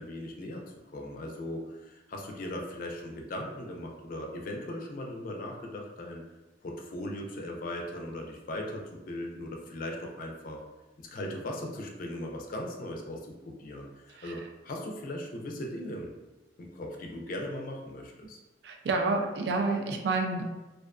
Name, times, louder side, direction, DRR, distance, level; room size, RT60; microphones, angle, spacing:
voice 1, 0.0-6.2 6.6-10.6 11.0-16.1 16.6-18.4, left 1 dB, 50° left, 1 dB, 0.4 m, -38 dB
voice 2, 18.6-20.4, right 3 dB, 65° right, 3 dB, 0.3 m, -29 dB
2.4 x 2.3 x 2.3 m, 1.1 s
head